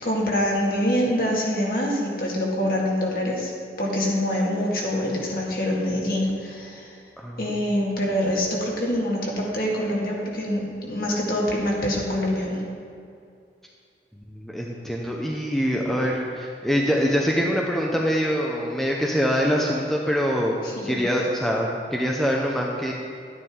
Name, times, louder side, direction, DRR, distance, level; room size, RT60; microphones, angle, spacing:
voice 1, 0.0-3.5 3.8-7.0 7.4-12.6 20.6-21.0, equal, 55° left, -3 dB, 1.9 m, -25 dB
voice 2, 14.3-20.5 20.9-22.9, equal, ahead, -2 dB, 0.7 m, -24 dB
11.5 x 9.4 x 3.7 m, 2.4 s
head